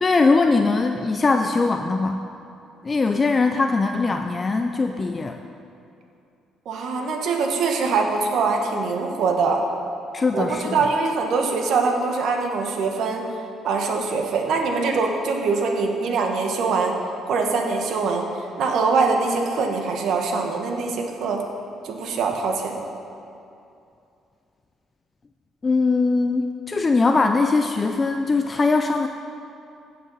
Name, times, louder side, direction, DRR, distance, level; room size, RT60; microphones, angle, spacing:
voice 1, 0.0-2.3 2.8-5.4 10.1-10.8 25.6-29.1, left 3 dB, 30° left, 5 dB, 0.4 m, -21 dB
voice 2, 6.6-9.6 10.3-13.3 13.6-17.0 17.3-21.4 21.8-22.9, right 4 dB, 70° right, 2 dB, 1.2 m, -23 dB
16.0 x 6.0 x 4.1 m, 2.6 s
cardioid pair, 95°, 0 cm